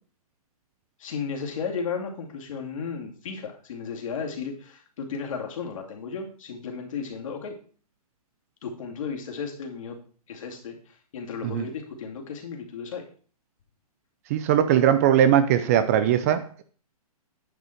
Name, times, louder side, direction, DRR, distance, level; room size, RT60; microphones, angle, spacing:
voice 1, 1.0-7.5 8.6-10.0 10.3-13.0, left 5 dB, 55° left, 2 dB, 2.4 m, -34 dB
voice 2, 14.3-16.6, right 10 dB, 25° right, 12 dB, 0.4 m, -20 dB
9.7 x 5.5 x 4.4 m, 0.43 s
hypercardioid pair, 155°, 20 cm